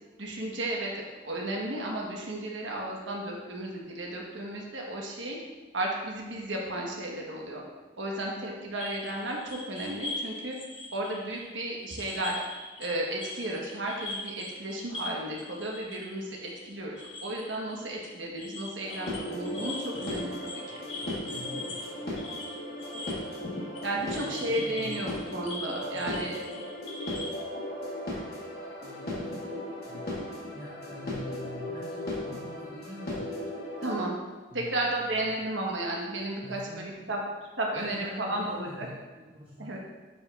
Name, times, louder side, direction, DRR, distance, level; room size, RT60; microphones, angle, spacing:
voice 1, 0.2-5.4 5.7-7.6 8.0-10.5 10.9-12.4 12.8-20.6 23.8-26.4 33.8-34.2 34.5-37.2 37.6-38.9 39.6-39.8, right 1 dB, 80° right, -1 dB, 1.2 m, -33 dB
sound 1, 8.7-12.9 13.2-27.4, left 2 dB, 75° left, 1.4 m, -41 dB
sound 2, 18.8-34.0, left 1 dB, 55° left, 1.4 m, -37 dB
voice 2, 21.0-21.9 24.0-25.1 25.9-26.4 28.8-29.1 29.9-30.0 30.5-33.3 34.5-35.4 36.4-37.2 37.7-39.8, left 1 dB, 30° right, -5 dB, 0.7 m, -45 dB
8.4 x 4.8 x 2.4 m, 1.3 s
head